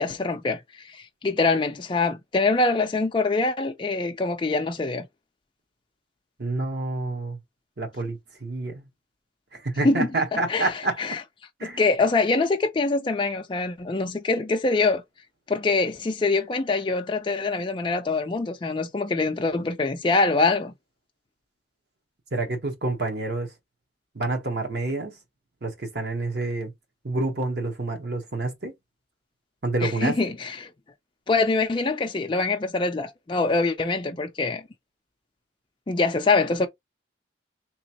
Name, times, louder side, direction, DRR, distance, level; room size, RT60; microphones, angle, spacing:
voice 1, 0.0-5.1 9.8-11.2 11.6-15.0 15.5-20.7 29.8-30.7 31.3-34.6 35.9-36.7, left 3 dB, 25° left, 0.4 m, -24 dB
voice 2, 6.4-7.4 7.8-8.8 9.5-11.0 11.6-11.8 22.3-23.5 24.1-25.1 25.6-26.7 27.0-28.7 29.6-30.2, right 2 dB, 60° right, 1.0 m, -28 dB
3.3 x 3.0 x 2.8 m
head